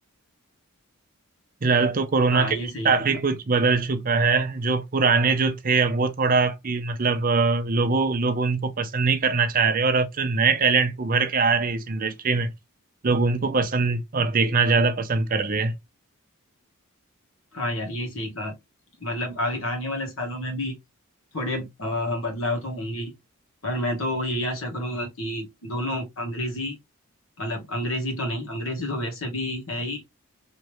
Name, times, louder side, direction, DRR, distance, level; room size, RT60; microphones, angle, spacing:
voice 1, 1.6-2.6 2.8-12.5 13.0-15.7, right 4 dB, 40° right, 0.6 m, -22 dB
voice 2, 2.3-2.9 17.5-18.5 19.0-20.8 21.3-23.1 23.6-26.8 27.4-30.0, left 1 dB, 65° left, 1.6 m, -29 dB
3.3 x 3.1 x 3.0 m
head